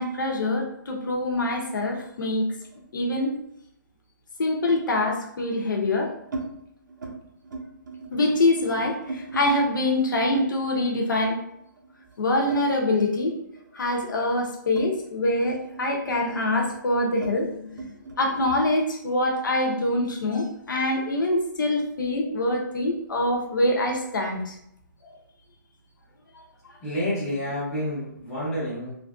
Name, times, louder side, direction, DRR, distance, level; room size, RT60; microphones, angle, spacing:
voice 1, 0.0-2.5 2.9-3.3 4.4-6.1 8.1-11.4 12.2-13.4 13.7-24.5, left 1 dB, 75° left, 1 dB, 0.8 m, -25 dB
sound 1, 2.0-3.4 4.7-4.9 5.7-6.5 6.8-7.2 7.4-9.6 10.3-13.2 13.5-18.5, right 3 dB, 65° right, 0.6 m, -39 dB
voice 2, 26.8-28.9, equal, 5° left, -12 dB, 0.5 m, -29 dB
3.3 x 2.5 x 2.3 m, 0.77 s
hypercardioid pair, 180°, 11 cm